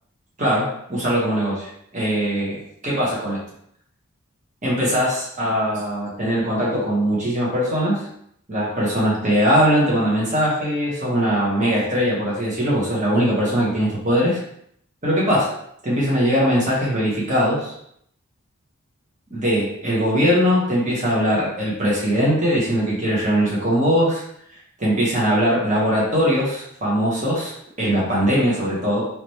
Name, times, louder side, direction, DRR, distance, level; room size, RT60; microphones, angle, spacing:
voice 1, 0.4-2.6 2.8-3.4 4.6-8.0 8.5-14.4 15.0-15.5 15.8-17.7 19.3-24.2 24.8-29.0, equal, 35° right, -6 dB, 1.4 m, -21 dB
4.0 x 3.2 x 3.1 m, 0.70 s
head